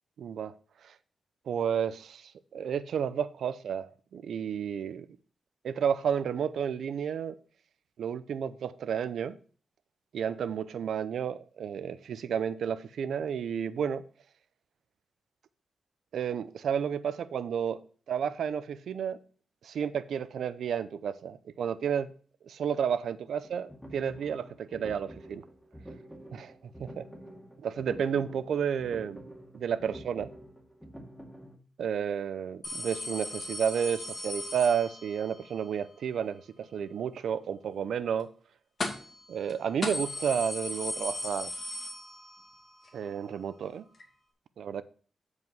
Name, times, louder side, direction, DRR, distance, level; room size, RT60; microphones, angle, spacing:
voice 1, 0.2-0.5 0.8-0.9 1.5-5.1 5.6-7.4 8.0-9.4 10.1-14.0 16.1-17.8 18.1-19.2 19.6-22.1 22.4-25.4 26.3-26.5 26.8-27.1 27.6-29.2 29.5-30.3 31.8-38.3 39.3-41.5 42.9-43.8 44.6-44.8, right 8 dB, 90° right, 0.6 m, -31 dB
sound 1, 23.4-31.6, right 1 dB, 5° left, 2.2 m, -48 dB
sound 2, 32.6-35.3 38.8-39.2 39.5-39.6 39.8-42.5 42.9-43.0 44.0-44.1, left 1 dB, 45° left, 2.3 m, -37 dB
9.6 x 4.9 x 5.4 m
wide cardioid pair, 100°, 0 cm